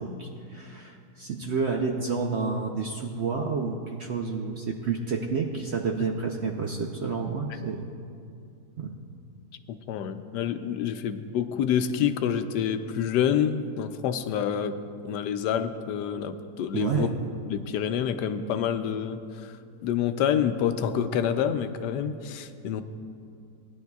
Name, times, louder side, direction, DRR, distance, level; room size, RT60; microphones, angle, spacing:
voice 1, 0.0-7.8 8.8-8.9 16.7-17.1, right 5 dB, 65° right, 1 dB, 0.7 m, -30 dB
voice 2, 9.9-14.8 15.0-17.1 17.5-19.2 19.8-22.8, left 8 dB, 85° left, 9 dB, 1.2 m, -27 dB
19.0 x 10.5 x 2.3 m, 2.5 s
omnidirectional pair, 1.8 m